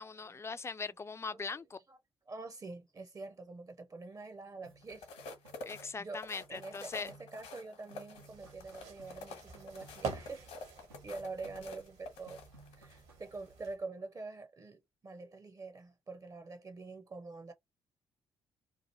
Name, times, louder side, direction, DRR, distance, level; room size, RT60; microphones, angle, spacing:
voice 1, 0.0-1.8 5.6-7.1, left 4 dB, 20° left, 0.4 m, -40 dB
voice 2, 1.3-2.0 2.3-5.1 6.0-10.5 11.0-12.4 12.8-17.5, right 3 dB, 30° right, 0.6 m, -46 dB
sound 1, 4.6-7.6 7.9-10.6 10.9-12.0 12.3-13.3, right 2 dB, 90° right, 0.6 m, -61 dB
sound 2, 4.8-13.0 13.5-13.7, left 3 dB, 70° left, 1.0 m, -49 dB
sound 3, 8.1-13.7, right 4 dB, 65° right, 1.1 m, -47 dB
2.8 x 2.4 x 3.0 m
figure-of-eight pair, 45°, 12 cm